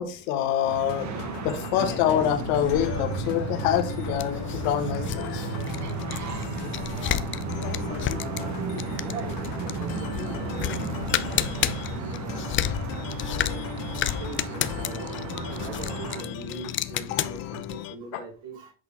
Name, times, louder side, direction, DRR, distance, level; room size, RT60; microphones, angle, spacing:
voice 1, 0.0-5.5, left 9 dB, 80° left, 7 dB, 1.5 m, -26 dB
sound 1, 0.6-16.2, right 7 dB, 40° right, 1.3 m, -34 dB
sound 2, 0.9-18.0, left 12 dB, 55° left, 1.0 m, -39 dB
sound 3, 1.8-17.8, left 11 dB, 30° left, 0.4 m, -32 dB
voice 2, 7.8-10.8 11.1-12.6 13.3-13.7 14.2-18.7, right 3 dB, 65° right, 0 dB, 2.8 m, -41 dB
8.0 x 4.1 x 3.4 m, 0.36 s
supercardioid pair, 105°, 41 cm